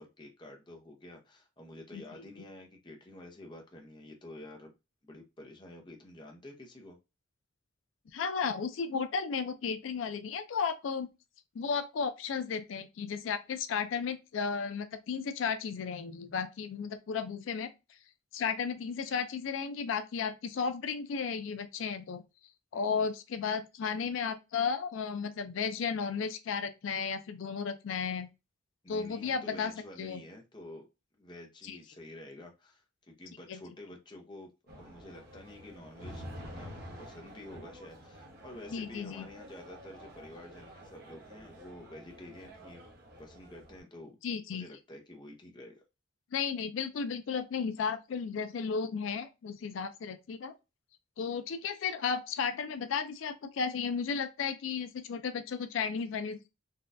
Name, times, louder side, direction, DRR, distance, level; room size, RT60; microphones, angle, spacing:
voice 1, 0.0-4.7 5.0-7.0 22.7-23.1 28.8-30.9 31.2-34.5 34.8-42.8 43.2-44.2 44.5-45.8, left 1 dB, 25° left, 0.6 m, -49 dB
voice 2, 8.1-11.1 11.6-17.7 18.3-22.2 22.7-28.3 28.9-29.7 30.0-30.2 31.6-31.8 33.5-33.6 38.7-39.3 44.2-44.6 46.3-50.5 51.2-56.5, left 6 dB, 85° left, 0.4 m, -34 dB
sound 1, 34.7-43.8, equal, 50° right, 0.9 m, -49 dB
4.0 x 2.3 x 2.5 m
head